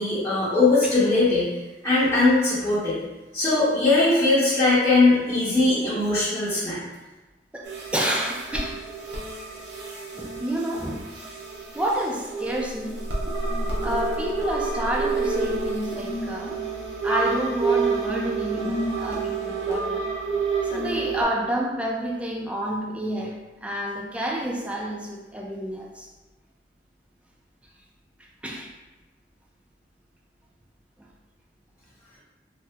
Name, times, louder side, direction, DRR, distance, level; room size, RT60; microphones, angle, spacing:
voice 1, 0.0-1.5 1.8-3.0 3.3-6.8, left 2 dB, 20° left, -14 dB, 0.9 m, -20 dB
voice 2, 7.5-8.8 10.2-11.0 11.7-13.0 13.8-16.5 17.0-20.1 20.7-26.1 28.4-28.7, right 1 dB, 5° right, -2 dB, 0.4 m, -29 dB
sound 1, 7.6-21.2, right 4 dB, 75° right, 0.7 m, -29 dB
2.8 x 2.0 x 3.4 m, 1.1 s
head